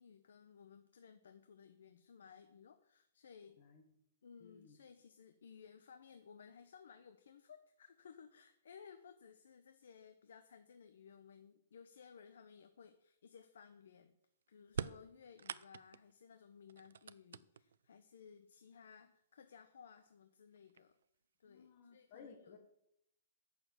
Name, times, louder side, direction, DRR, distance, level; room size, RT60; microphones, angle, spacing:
voice 1, 0.0-3.6 4.2-14.2 14.5-21.0 21.4-22.6, left 6 dB, 80° left, 8 dB, 0.8 m, -59 dB
voice 2, 4.4-4.8 21.4-22.6, left 5 dB, 30° left, 2 dB, 1.4 m, -58 dB
sound 1, 14.7-16.1 16.7-17.9 18.9-19.0 20.0-20.1 20.6-21.0, right 7 dB, 75° right, 0.4 m, -45 dB
8.0 x 6.7 x 7.7 m, 0.77 s
hypercardioid pair, 180°, 0 cm